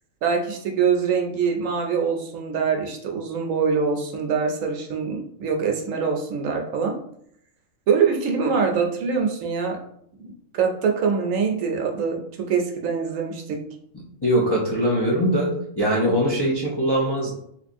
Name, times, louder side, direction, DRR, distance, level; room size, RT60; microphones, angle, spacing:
voice 1, 0.2-7.0 7.9-9.8 10.2-12.2 12.5-13.6, right 6 dB, 75° right, 3 dB, 1.0 m, -24 dB
voice 2, 14.2-17.3, equal, 35° left, -5 dB, 0.4 m, -22 dB
3.7 x 2.9 x 2.6 m, 0.70 s
omnidirectional pair, 1.4 m